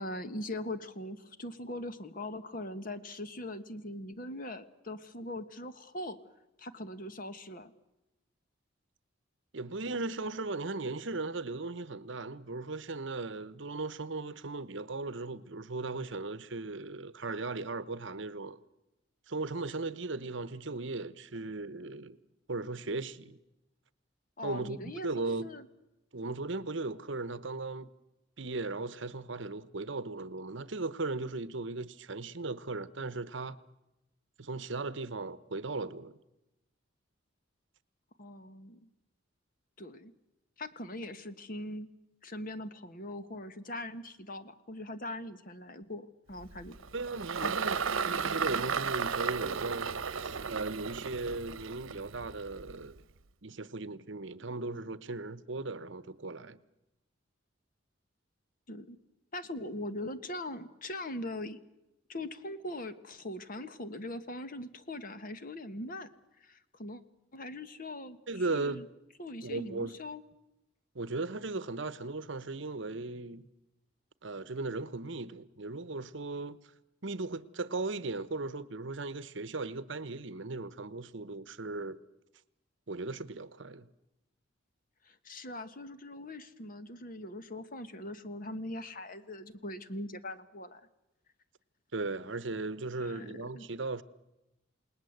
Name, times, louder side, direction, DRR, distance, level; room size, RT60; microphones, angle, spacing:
voice 1, 0.0-6.2 6.6-7.7 24.4-25.6 38.2-38.8 39.8-40.1 40.6-41.9 42.2-46.8 47.4-47.5 58.7-59.0 59.3-61.6 62.1-66.1 66.4-67.0 67.3-68.2 68.5-68.8 69.2-70.2 85.0-90.8 93.0-93.7, left 1 dB, 45° left, 1.4 m, -41 dB
voice 2, 9.5-18.6 19.3-22.2 22.5-23.4 24.4-25.5 26.1-27.9 28.4-33.6 34.4-36.1 46.9-53.0 53.4-56.6 68.3-68.9 69.4-69.9 70.9-73.4 74.2-76.6 77.0-82.0 82.9-83.9 91.9-94.0, right 3 dB, 65° right, 1.0 m, -37 dB
Engine, 46.4-53.0, right 6 dB, 90° right, 0.9 m, -34 dB
28.5 x 19.5 x 8.0 m
head